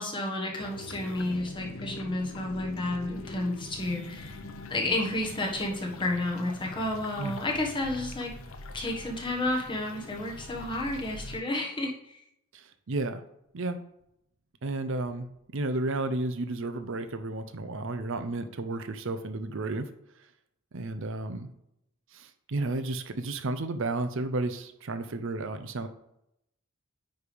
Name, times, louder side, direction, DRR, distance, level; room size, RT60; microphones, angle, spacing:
voice 1, 0.0-4.4 4.7-8.3 8.7-12.2, left 1 dB, 25° left, -1 dB, 1.4 m, -31 dB
sound 1, 0.6-11.4, left 2 dB, 75° left, 0.7 m, -43 dB
voice 2, 12.5-13.2 13.5-13.8 14.6-19.9 20.7-21.5 22.1-25.9, right 2 dB, 65° right, 9 dB, 0.6 m, -32 dB
9.3 x 3.4 x 5.1 m, 0.79 s
head